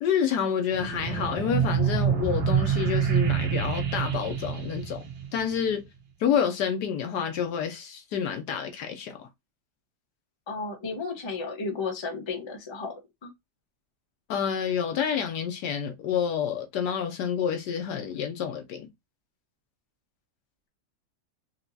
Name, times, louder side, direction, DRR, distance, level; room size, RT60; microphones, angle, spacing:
voice 1, 0.0-5.0 5.3-5.8 6.2-9.3 14.3-18.9, left 7 dB, 70° left, 1.1 m, -28 dB
sound 1, 0.7-5.7, right 7 dB, 85° right, 1.6 m, -27 dB
voice 2, 10.5-12.9 13.2-13.3, left 4 dB, 25° left, 0.7 m, -33 dB
4.5 x 2.9 x 2.6 m
omnidirectional pair, 2.0 m